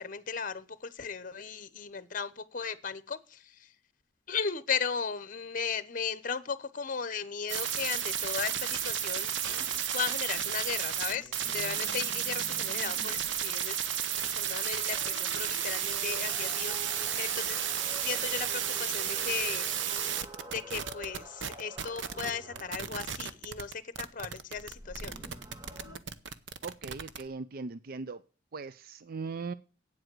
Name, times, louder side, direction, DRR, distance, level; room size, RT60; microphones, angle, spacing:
voice 1, 0.0-3.7 4.3-9.4 9.9-13.8 14.4-17.6 18.0-19.7 20.5-25.2, left 6 dB, 45° left, 15 dB, 0.9 m, -36 dB
sound 1, 7.5-22.3 22.5-27.2, right 9 dB, 90° right, 0.8 m, -33 dB
sound 2, 9.5-9.9 10.9-13.4 14.1-23.1 24.5-26.0, right 1 dB, 20° right, 1.8 m, -48 dB
voice 2, 26.6-28.2 28.5-29.5, right 4 dB, 55° right, 15 dB, 0.5 m, -39 dB
8.8 x 7.8 x 7.6 m, 0.34 s
head